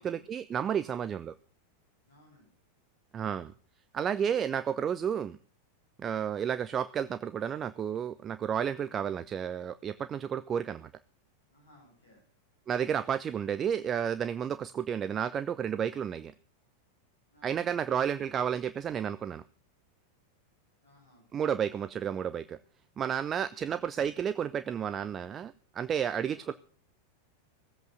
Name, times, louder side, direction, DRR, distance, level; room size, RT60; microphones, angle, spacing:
voice 1, 0.0-1.3 3.1-3.5 3.9-5.4 6.0-10.9 12.7-16.3 17.4-19.4 21.3-22.6 23.0-26.5, right 8 dB, 25° right, 13 dB, 0.6 m, -31 dB
voice 2, 2.0-2.5 11.5-12.2 17.3-17.8 20.8-21.5 26.2-26.5, left 1 dB, 70° left, -1 dB, 6.4 m, -61 dB
17.5 x 8.1 x 7.8 m, 0.43 s
figure-of-eight pair, 90°, 0 cm